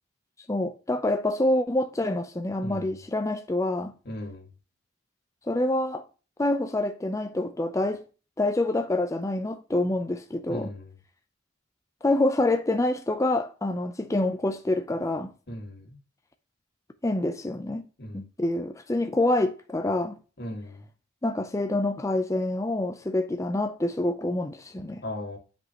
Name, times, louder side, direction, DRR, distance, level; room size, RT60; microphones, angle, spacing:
voice 1, 0.5-3.9 5.5-6.0 6.4-8.0 8.4-10.7 12.0-15.3 17.0-17.8 18.1-20.2 21.2-25.0, left 2 dB, 15° left, 0.5 m, -26 dB
voice 2, 2.6-2.9 4.1-4.5 10.5-10.9 15.5-16.0 18.0-18.2 20.4-20.8 25.0-25.4, left 1 dB, 55° left, 1.9 m, -37 dB
8.8 x 5.3 x 2.9 m
head